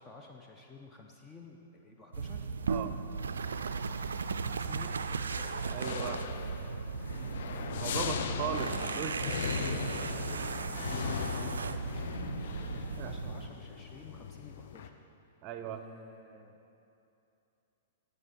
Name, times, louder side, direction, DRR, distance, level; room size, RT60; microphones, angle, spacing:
voice 1, 0.0-2.5 4.4-5.4 9.6-9.8 10.3-10.5 10.8-15.0 15.6-16.6, left 4 dB, 15° left, 1 dB, 0.7 m, -52 dB
sound 1, 2.1-13.5, right 5 dB, 70° right, 0.4 m, -36 dB
voice 2, 2.7-3.0 5.7-6.2 7.8-9.2 13.0-13.1 15.4-15.8, right 8 dB, 35° right, 8 dB, 0.6 m, -38 dB
sound 2, 5.2-14.9, left 7 dB, 55° left, 0.5 m, -39 dB
15.5 x 5.3 x 4.3 m, 2.7 s
figure-of-eight pair, 105°, 0 cm